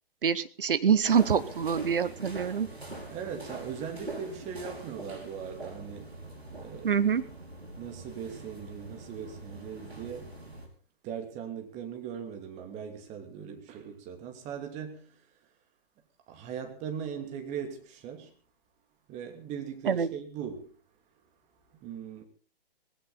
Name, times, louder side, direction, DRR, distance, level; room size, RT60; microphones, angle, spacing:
voice 1, 0.2-2.7 6.8-7.2 19.9-20.1, right 7 dB, 60° right, 1.4 m, -25 dB
sound 1, 1.0-10.7, right 2 dB, 85° right, 5.3 m, -44 dB
voice 2, 3.0-6.1 6.5-7.0 7.8-10.3 11.0-15.2 16.3-18.3 19.1-20.7 21.8-22.2, right 7 dB, 20° right, 2.8 m, -39 dB
18.5 x 16.5 x 4.1 m
figure-of-eight pair, 125°, 31 cm